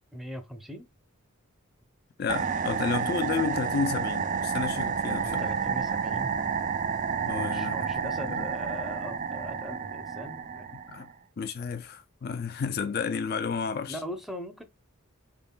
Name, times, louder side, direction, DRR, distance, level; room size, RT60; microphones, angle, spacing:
voice 1, 0.1-0.9 5.2-6.4 7.3-10.7 13.9-14.6, equal, ahead, 0.7 m, -40 dB
voice 2, 2.2-5.5 7.3-7.8 8.3-8.5 10.9-11.1 11.4-14.0, left 5 dB, 45° left, 0.4 m, -31 dB
sound 1, 2.3-11.1, right 6 dB, 35° right, 0.4 m, -30 dB
4.6 x 3.7 x 2.3 m
head